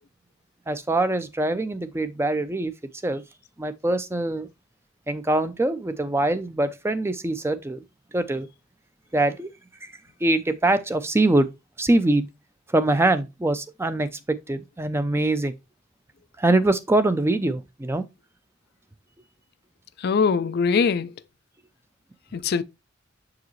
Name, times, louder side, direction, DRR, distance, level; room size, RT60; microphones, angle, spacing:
voice 1, 0.7-2.7 3.0-3.2 3.6-4.5 5.1-7.8 8.1-8.5 9.1-9.5 9.8-9.9 10.2-11.5 11.8-12.3 12.7-15.5 16.4-18.1, right 2 dB, 10° right, 0.5 m, -23 dB
voice 2, 20.0-21.1 22.3-22.6, left 5 dB, 50° left, 0.4 m, -22 dB
7.1 x 4.8 x 3.1 m
head